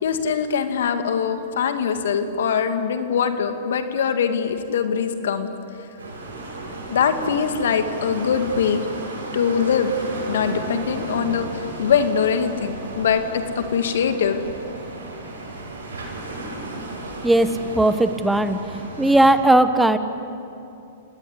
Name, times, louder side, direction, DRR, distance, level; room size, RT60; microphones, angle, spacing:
voice 1, 0.0-5.5 6.9-8.8 9.3-9.9 10.3-14.4, left 7 dB, 70° left, 7 dB, 2.3 m, -22 dB
sound 1, 6.0-19.3, right 2 dB, 80° right, 7.5 m, -34 dB
voice 2, 17.2-18.6 19.0-20.0, right 1 dB, 5° right, 10 dB, 1.3 m, -17 dB
29.0 x 19.0 x 10.0 m, 2.7 s
hypercardioid pair, 115°, 0 cm